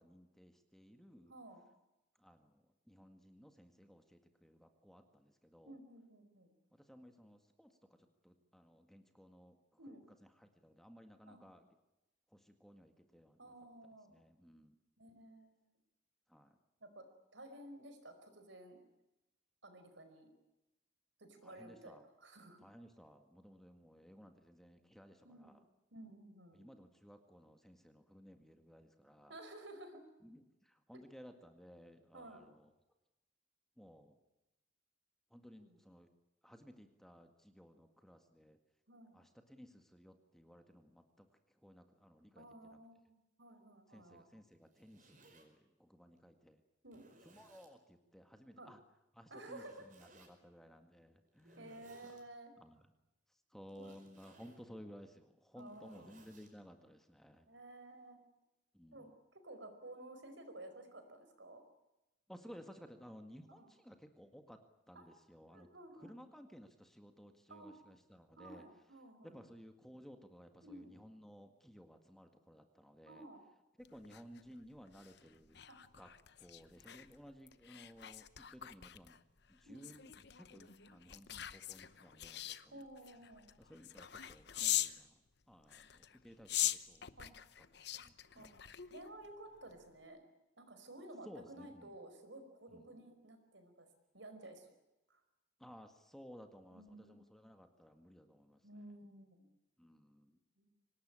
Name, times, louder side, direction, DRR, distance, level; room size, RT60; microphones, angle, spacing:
voice 1, 0.0-1.3 2.2-5.8 6.7-9.6 10.2-11.7 12.3-13.6 13.8-14.8 16.3-16.6 21.4-22.1 22.6-25.6 26.5-29.4 30.2-32.7 33.8-34.2 35.3-36.1 36.4-38.6 39.1-42.8 43.9-46.6 47.2-48.8 49.1-51.8 52.6-52.9 53.3-57.5 58.7-59.2 62.3-64.6 64.9-65.7 65.9-68.6 69.2-73.3 73.9-75.6 76.0-76.1 76.4-79.2 79.5-82.9 83.6-87.3 87.6-88.6 91.2-91.9 92.7-92.9 95.6-98.8 99.8-100.4, equal, ahead, 6 dB, 1.8 m, -58 dB
voice 2, 1.3-1.6 5.6-6.5 9.8-10.0 11.3-11.4 13.4-14.1 15.0-15.5 16.8-17.1 17.3-18.8 19.6-20.3 21.2-22.6 25.2-25.6 25.9-26.7 29.3-30.1 32.1-32.4 35.6-35.7 38.9-39.1 42.4-44.2 46.8-47.0 48.6-48.7 49.3-49.8 51.6-52.5 53.7-53.9 55.6-56.1 57.5-58.2 58.9-61.6 63.5-63.7 64.9-65.1 65.5-66.2 67.5-67.7 68.4-69.4 70.6-71.0 73.1-73.4 75.7-75.8 79.6-79.9 82.7-83.5 87.2-87.3 88.3-88.6 88.9-90.2 90.6-93.9 94.1-94.7 95.1-95.2 96.7-97.2 98.6-99.5 100.6-100.7, right 1 dB, 75° right, 7 dB, 5.1 m, -54 dB
Zipper (clothing), 44.5-45.5 46.2-46.3 46.9-47.7 49.6-50.3 51.3-52.2 53.7-54.6 55.4-56.5, right 2 dB, 45° right, 5.1 m, -64 dB
sound 1, 73.8-85.0 85.6-89.3 89.7-89.9, left 13 dB, 60° left, 0.9 m, -43 dB
25.0 x 19.5 x 8.9 m, 0.96 s
head